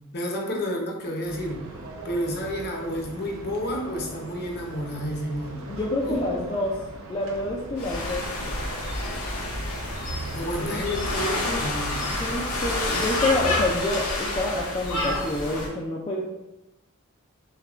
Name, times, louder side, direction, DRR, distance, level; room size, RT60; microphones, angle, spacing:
voice 1, 0.1-1.7 2.0-5.6 6.0-6.2 10.3-12.2, equal, 45° left, 0 dB, 0.7 m, -30 dB
sound 1, 1.2-13.7, right 2 dB, 65° right, 0.6 m, -39 dB
voice 2, 5.7-6.8 7.1-8.3 10.6-10.8 12.1-16.2, left 2 dB, 25° left, -3 dB, 0.3 m, -27 dB
sound 2, 7.8-15.7, left 2 dB, 90° left, 0.9 m, -29 dB
6.4 x 2.3 x 2.4 m, 0.97 s
head